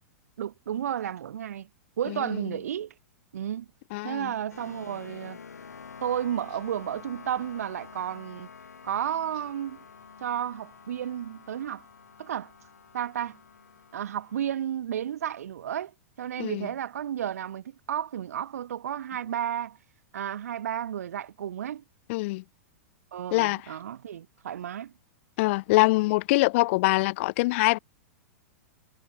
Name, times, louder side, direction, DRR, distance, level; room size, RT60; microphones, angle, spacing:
voice 1, 0.4-1.7 2.0-2.9 3.3-3.7 4.0-5.4 6.0-8.5 8.8-9.8 10.2-11.9 12.2-12.5 12.9-13.4 13.9-15.9 16.2-19.8 20.1-21.8 23.1-24.9, right 10 dB, 75° right, 2.2 m, -32 dB
voice 2, 3.9-4.3 16.4-16.7 22.1-22.4 23.3-23.6 25.4-27.8, left 22 dB, 55° left, 1.0 m, -24 dB
sound 1, 4.5-14.6, left 6 dB, 90° left, 4.6 m, -48 dB
hypercardioid pair, 110°, 8 cm